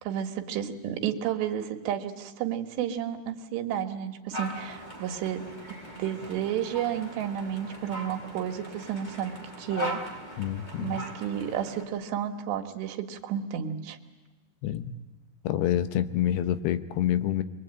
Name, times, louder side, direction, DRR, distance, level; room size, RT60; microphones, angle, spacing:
voice 1, 0.0-5.4 6.0-10.0 10.8-14.0, right 9 dB, 90° right, 4 dB, 3.7 m, -31 dB
sound 1, 4.3-11.8, equal, 10° left, 3.0 m, -40 dB
voice 2, 10.4-11.0 14.6-14.9 15.4-17.4, left 11 dB, 80° left, 12 dB, 2.9 m, -27 dB
26.0 x 22.0 x 8.9 m, 1.2 s
omnidirectional pair, 4.8 m